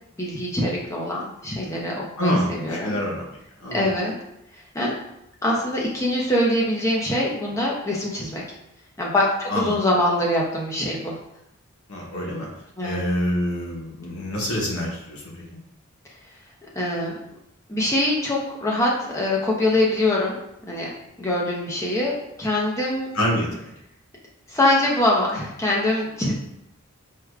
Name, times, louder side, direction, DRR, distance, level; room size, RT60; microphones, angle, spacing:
voice 1, 0.2-3.0 3.7-4.2 4.7-4.9 5.4-8.4 9.0-11.2 12.8-13.0 16.8-17.4 17.7-20.4 20.7-20.9 21.2-22.1 22.4-23.1 24.5-26.3, left 1 dB, 15° left, -3 dB, 0.6 m, -23 dB
voice 2, 2.2-3.9 9.5-9.7 11.9-12.5 12.8-15.4 23.1-23.7, equal, 80° left, -2 dB, 0.9 m, -26 dB
4.6 x 2.3 x 2.4 m, 0.83 s
head